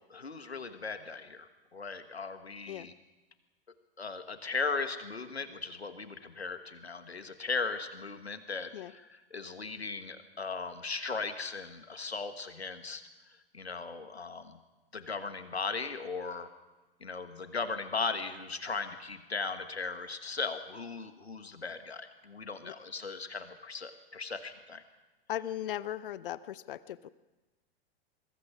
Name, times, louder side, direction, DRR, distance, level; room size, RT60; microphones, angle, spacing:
voice 1, 0.1-2.9 4.0-9.1 9.3-13.0 13.5-14.6 14.9-16.5 17.0-24.8, left 4 dB, 80° left, 10 dB, 1.5 m, -37 dB
voice 2, 25.3-27.1, left 11 dB, 60° left, 18 dB, 0.8 m, -38 dB
24.5 x 22.0 x 6.1 m, 1.1 s
figure-of-eight pair, 95°, 31 cm